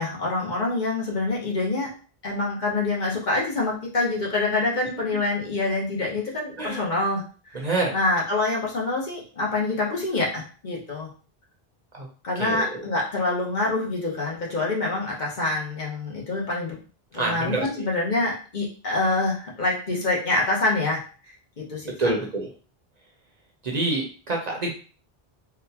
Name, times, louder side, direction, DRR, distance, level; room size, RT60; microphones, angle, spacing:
voice 1, 0.0-1.9 2.2-11.1 12.2-16.8 17.1-21.0 21.6-22.1, left 2 dB, 50° left, -3 dB, 1.0 m, -26 dB
voice 2, 7.5-7.9 11.9-12.1 12.4-12.8 17.1-17.7 22.0-22.5 23.6-24.7, right 2 dB, 50° right, -1 dB, 0.7 m, -26 dB
4.0 x 2.2 x 2.8 m, 0.38 s
omnidirectional pair, 1.0 m